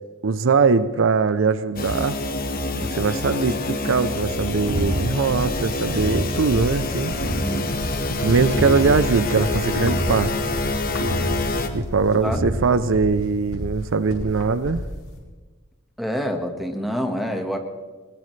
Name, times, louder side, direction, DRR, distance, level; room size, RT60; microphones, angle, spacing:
voice 1, 0.2-2.2 2.8-7.1 8.2-10.3 11.7-14.8, right 4 dB, 65° right, 0.6 m, -21 dB
sound 1, 1.8-11.7, left 2 dB, 45° left, 1.3 m, -27 dB
sound 2, 4.3-15.2, equal, 80° left, 4.6 m, -32 dB
sound 3, 4.6-13.1, right 1 dB, 85° right, 1.8 m, -32 dB
voice 2, 16.0-17.6, equal, ahead, 1.5 m, -26 dB
21.0 x 19.5 x 3.3 m
head